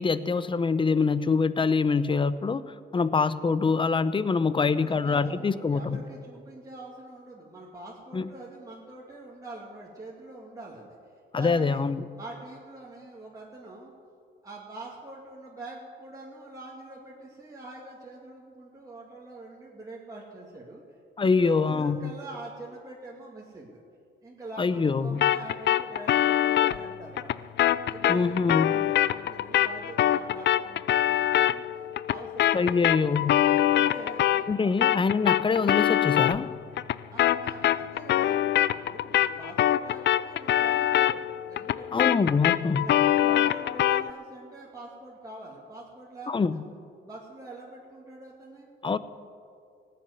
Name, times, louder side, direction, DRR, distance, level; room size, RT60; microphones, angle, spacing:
voice 1, 0.0-2.6 2.9-6.0 8.1-8.3 11.3-12.1 21.2-22.1 24.6-25.2 28.1-28.7 32.5-33.4 34.5-36.6 41.9-42.9 46.3-46.6 48.8-49.0, left 4 dB, 25° left, 15 dB, 0.7 m, -25 dB
voice 2, 4.4-11.0 11.4-11.8 12.1-13.9 14.4-20.8 21.2-23.8 24.2-27.5 27.9-31.6 32.1-33.2 33.7-35.2 37.1-42.1 42.8-46.3 47.0-48.7, right 2 dB, 15° right, -4 dB, 2.4 m, -44 dB
sound 1, 25.2-34.5 34.8-44.1, left 12 dB, 60° left, 0.5 m, -24 dB
17.5 x 7.8 x 9.7 m, 2.3 s
cardioid pair, 90°, 20 cm